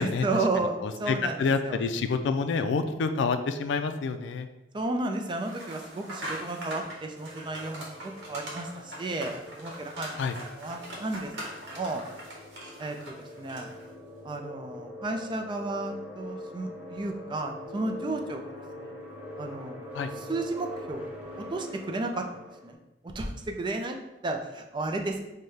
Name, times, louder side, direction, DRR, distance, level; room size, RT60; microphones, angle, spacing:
voice 1, 0.0-1.4 1.6-1.8 4.7-10.2 10.6-11.3 11.7-12.0 12.8-13.7 14.2-18.5 18.8-18.9 19.4-19.9 20.3-21.1 21.4-22.8 23.0-25.2, right 2 dB, 25° right, 4 dB, 0.4 m, -33 dB
voice 2, 0.8-4.5 10.2-10.4 19.9-20.1, left 4 dB, 80° left, 9 dB, 0.3 m, -28 dB
sound 1, 5.4-13.9, right 1 dB, 80° right, 1.0 m, -42 dB
sound 2, 6.2-22.7, left 1 dB, 10° right, 0.8 m, -44 dB
5.4 x 2.2 x 3.2 m, 0.98 s
head